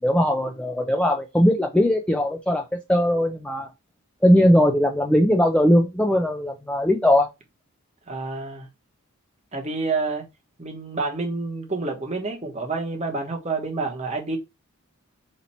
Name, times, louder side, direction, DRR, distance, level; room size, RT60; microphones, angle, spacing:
voice 1, 0.0-2.6 2.9-3.7 4.2-7.3, equal, 5° left, 0.4 m, -19 dB
voice 2, 8.1-8.7 9.5-10.2 10.6-14.4, right 3 dB, 30° right, 1.0 m, -28 dB
4.2 x 2.8 x 4.2 m
head